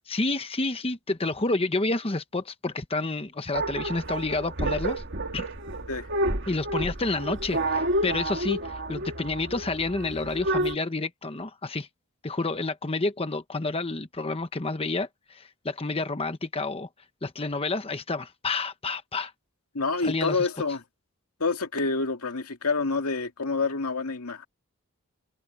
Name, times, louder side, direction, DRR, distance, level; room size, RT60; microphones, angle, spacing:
voice 1, 0.1-5.0 5.3-5.4 6.5-11.9 12.2-16.9 17.2-19.3 20.0-20.5, left 3 dB, 25° left, 1.0 m, -29 dB
sound 1, 3.5-10.8, right 1 dB, 55° right, 2.1 m, -30 dB
voice 2, 19.7-20.8 21.4-24.5, left 3 dB, 90° left, 2.2 m, -27 dB
head